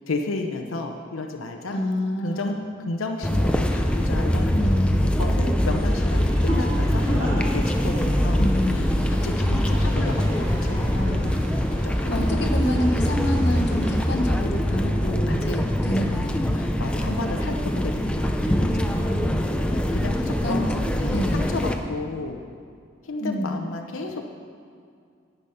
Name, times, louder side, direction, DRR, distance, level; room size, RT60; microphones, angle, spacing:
voice 1, 0.1-1.8 2.2-4.6 5.2-11.2 11.8-12.5 12.8-12.9 13.1-13.3 15.2-16.2 16.5-19.1 19.7-22.4 23.0-24.3, left 3 dB, 90° left, 3 dB, 0.7 m, -33 dB
voice 2, 1.7-2.7 4.5-5.5 8.4-9.1 10.9-11.4 12.1-16.5 17.5-17.6 19.0-19.8 20.4-20.8 21.1-21.5 23.2-23.6, left 1 dB, 55° left, 3 dB, 1.0 m, -28 dB
sound 1, 3.2-21.8, equal, 5° left, 0.4 m, -23 dB
sound 2, 5.7-14.1, equal, 70° right, 1.9 m, -39 dB
10.5 x 8.1 x 5.5 m, 2.3 s
head